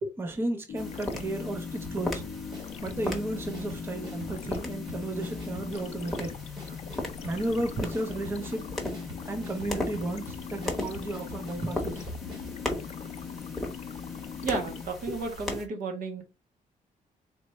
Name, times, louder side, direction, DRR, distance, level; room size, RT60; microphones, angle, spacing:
voice 1, 0.2-2.2 2.8-6.4 7.2-8.6 9.2-12.0, right 2 dB, 15° right, 0.6 m, -33 dB
sound 1, 0.7-14.9, left 6 dB, 50° left, 0.4 m, -40 dB
sound 2, 0.7-15.7, left 2 dB, ahead, 1.0 m, -38 dB
sound 3, 1.8-12.6, equal, 30° right, 1.8 m, -47 dB
voice 2, 14.4-16.2, right 3 dB, 70° right, 1.3 m, -32 dB
4.2 x 3.2 x 3.1 m
wide cardioid pair, 160°, 14 cm